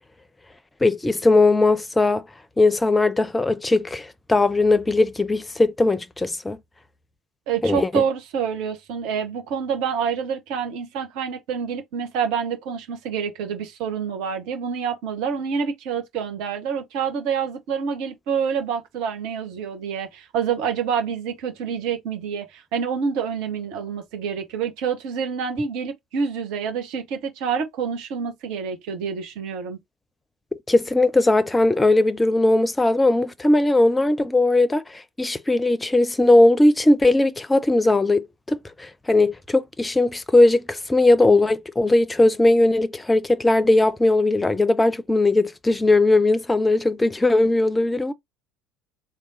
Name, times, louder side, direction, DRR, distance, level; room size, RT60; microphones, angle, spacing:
voice 1, 0.8-2.3 2.6-6.6 7.6-8.0 30.7-48.1, left 2 dB, 15° left, 0.6 m, -19 dB
voice 2, 7.5-29.8, right 6 dB, 55° right, 1.0 m, -27 dB
3.6 x 2.3 x 3.9 m
figure-of-eight pair, 60°, 0 cm